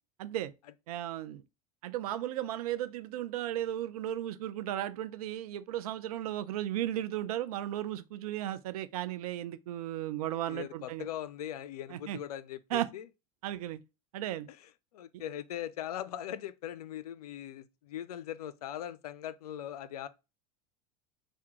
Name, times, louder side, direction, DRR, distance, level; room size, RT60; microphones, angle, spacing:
voice 1, 0.2-0.5 0.9-1.4 1.8-11.1 11.9-12.2 12.7-12.9 13.4-13.8 14.1-14.5 15.1-15.2, right 12 dB, 75° right, 0.4 m, -35 dB
voice 2, 10.5-13.1 14.5-20.1, left 11 dB, 80° left, 0.4 m, -40 dB
3.4 x 2.2 x 2.8 m
hypercardioid pair, 80°, 19 cm